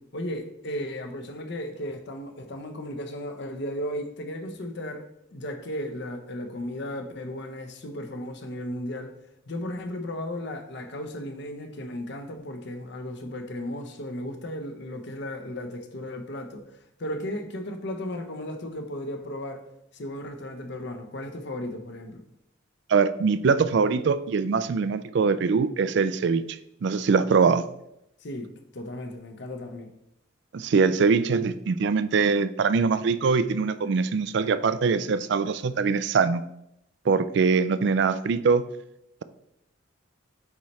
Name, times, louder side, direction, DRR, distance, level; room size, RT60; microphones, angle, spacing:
voice 1, 0.0-9.2 9.5-19.6 19.9-22.2 28.2-29.9, left 1 dB, 60° left, 0.8 m, -35 dB
voice 2, 22.9-27.6 30.5-36.4 37.1-38.6, right 5 dB, 60° right, 0.3 m, -23 dB
8.4 x 3.2 x 4.2 m
head